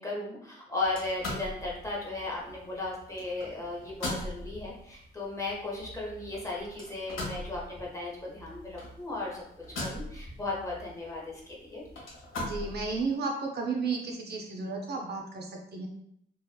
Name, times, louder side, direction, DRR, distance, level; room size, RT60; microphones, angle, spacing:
voice 1, 0.0-11.8, left 2 dB, 15° left, -4 dB, 0.7 m, -36 dB
sound 1, 0.8-13.1, left 1 dB, 90° left, 0.9 m, -41 dB
voice 2, 12.4-15.9, right 4 dB, 55° right, 1 dB, 0.4 m, -33 dB
2.7 x 2.2 x 2.2 m, 0.73 s
cardioid pair, 110°, 21 cm